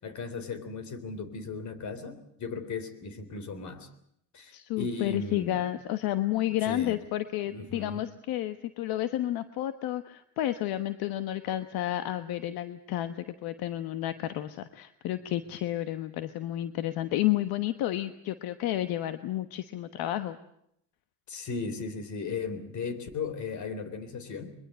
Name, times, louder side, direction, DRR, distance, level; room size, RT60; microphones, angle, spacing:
voice 1, 0.0-3.9 4.3-5.6 6.7-7.0 7.5-8.1 21.3-24.6, left 4 dB, 50° left, 13 dB, 3.8 m, -36 dB
voice 2, 4.5-20.4, left 13 dB, 80° left, 11 dB, 1.2 m, -31 dB
22.5 x 22.0 x 7.9 m, 0.72 s
cardioid pair, 110°, 36 cm